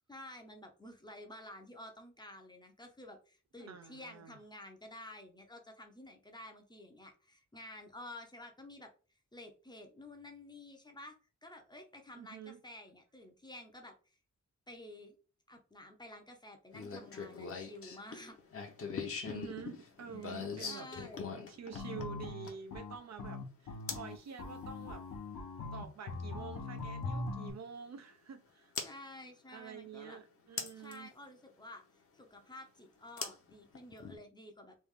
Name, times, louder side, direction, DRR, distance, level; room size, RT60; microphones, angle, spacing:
voice 1, 0.1-8.9 9.3-11.1 11.4-14.2 14.7-15.1 15.5-18.4 20.1-21.3 28.8-30.2 30.8-31.8 32.1-34.8, left 1 dB, 15° left, 0.6 m, -51 dB
voice 2, 3.6-4.4 12.2-12.6 19.2-20.9 21.5-25.0 25.7-28.7 29.5-31.1, right 7 dB, 55° right, 0.5 m, -48 dB
sound 1, 16.7-22.7 23.9-24.1 26.0-26.1 28.8-28.9 30.6-31.0 33.2-34.2, left 5 dB, 45° left, 0.7 m, -41 dB
sound 2, 21.7-27.5, left 3 dB, 80° left, 0.8 m, -41 dB
3.2 x 2.4 x 3.6 m
wide cardioid pair, 145°, 32 cm